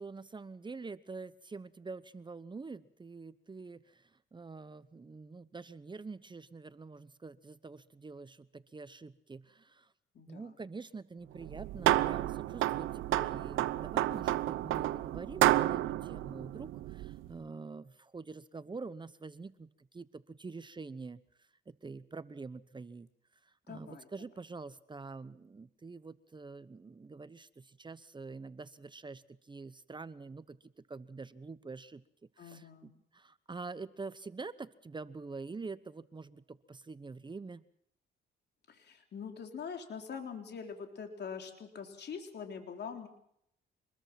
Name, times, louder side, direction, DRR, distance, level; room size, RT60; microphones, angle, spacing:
voice 1, 0.0-9.9 10.3-21.2 21.7-23.1 23.4-30.6 30.9-32.0 32.4-37.6, right 4 dB, 25° right, 15 dB, 0.9 m, -46 dB
voice 2, 10.1-10.5 23.7-24.1 32.4-32.9 38.7-43.1, left 6 dB, 55° left, 4 dB, 3.6 m, -44 dB
sound 1, 11.4-17.3, right 15 dB, 85° right, 0.8 m, -31 dB
26.0 x 21.0 x 6.0 m, 0.72 s
cardioid pair, 90°, 20 cm